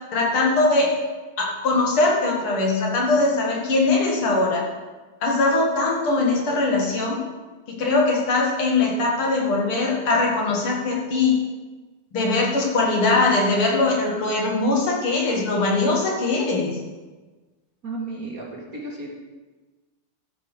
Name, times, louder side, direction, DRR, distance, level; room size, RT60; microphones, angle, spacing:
voice 1, 0.1-0.9 1.4-4.6 5.2-7.2 7.7-11.4 12.1-16.8, left 3 dB, 75° left, -2 dB, 3.0 m, -21 dB
voice 2, 17.8-19.1, right 2 dB, 45° right, -1 dB, 2.1 m, -33 dB
13.0 x 7.6 x 5.0 m, 1.3 s
omnidirectional pair, 2.4 m